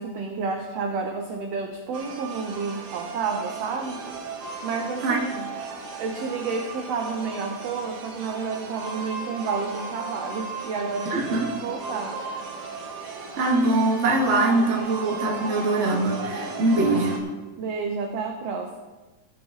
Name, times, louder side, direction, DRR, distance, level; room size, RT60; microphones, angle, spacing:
voice 1, 0.0-4.1 4.6-5.5 6.0-12.3 17.6-18.8, right 5 dB, 75° right, 4 dB, 1.5 m, -30 dB
sound 1, 1.9-17.2, right 4 dB, 60° right, 2.0 m, -36 dB
voice 2, 11.0-11.5 13.4-17.2, right 2 dB, 40° right, -2 dB, 1.0 m, -22 dB
15.5 x 7.0 x 3.8 m, 1.2 s
omnidirectional pair, 3.7 m